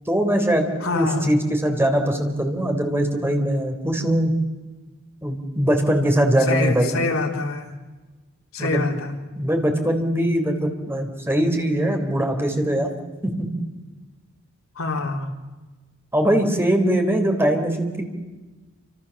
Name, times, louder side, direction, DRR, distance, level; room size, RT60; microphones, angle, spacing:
voice 1, 0.1-4.4 5.2-7.0 8.6-8.9 9.3-12.9 13.2-13.5 16.1-18.0, right 1 dB, 10° right, 4.0 m, -21 dB
voice 2, 0.8-1.3 6.5-7.7 8.5-9.1 14.8-15.3, left 3 dB, 70° left, 3.6 m, -25 dB
29.5 x 27.0 x 7.3 m
head